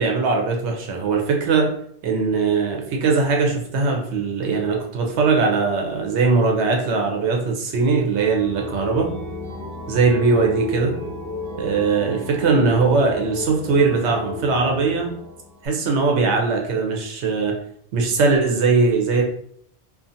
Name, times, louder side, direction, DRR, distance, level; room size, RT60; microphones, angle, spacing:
voice 1, 0.0-1.7 2.0-9.1 9.9-10.9 11.6-15.1 15.6-17.5 17.9-19.2, right 4 dB, 80° right, 1 dB, 1.0 m, -20 dB
sound 1, 8.1-15.7, left 2 dB, 50° right, 0.7 m, -33 dB
2.5 x 2.4 x 2.6 m, 0.65 s
omnidirectional pair, 1.2 m